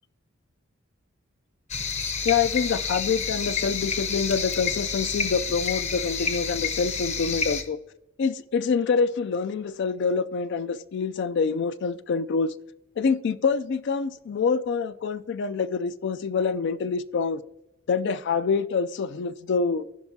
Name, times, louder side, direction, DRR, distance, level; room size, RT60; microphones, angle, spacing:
sound 1, 1.7-7.6, left 5 dB, 35° left, 0.8 m, -29 dB
voice 1, 2.2-7.8 8.2-12.5 13.0-17.4 17.9-19.8, left 5 dB, 60° left, 0.4 m, -26 dB
15.5 x 5.7 x 2.7 m
head